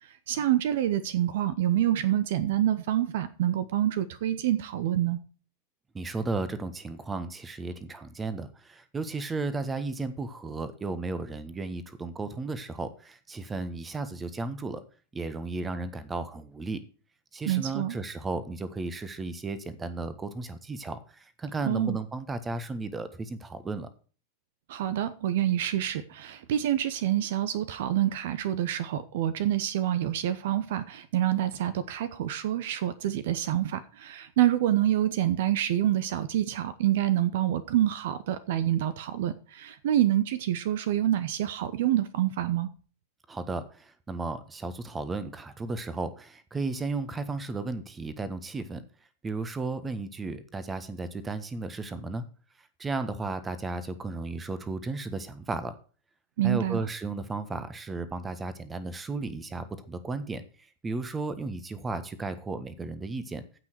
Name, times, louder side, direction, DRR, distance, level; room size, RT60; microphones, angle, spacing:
voice 1, 0.0-5.2 17.5-18.0 21.6-22.0 24.7-42.7 56.4-56.8, right 12 dB, 55° right, 15 dB, 1.0 m, -27 dB
voice 2, 5.9-14.8 15.1-16.8 17.3-23.9 43.3-48.8 49.2-52.2 52.8-55.8 56.4-60.4 60.8-63.6, right 3 dB, 15° right, 14 dB, 1.4 m, -34 dB
15.5 x 5.8 x 4.5 m, 0.38 s
figure-of-eight pair, 90°, 0 cm